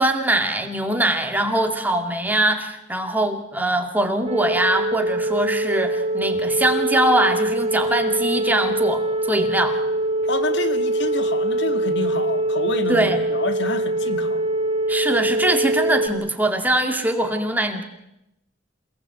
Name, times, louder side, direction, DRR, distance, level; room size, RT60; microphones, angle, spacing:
voice 1, 0.0-9.8 12.9-13.2 14.9-17.8, right 1 dB, 10° right, 4 dB, 2.3 m, -22 dB
sound 1, 4.3-16.1, right 1 dB, 30° right, 3.8 m, -23 dB
voice 2, 10.3-14.4, left 2 dB, 65° left, 8 dB, 1.9 m, -28 dB
28.0 x 18.5 x 8.1 m, 0.87 s
head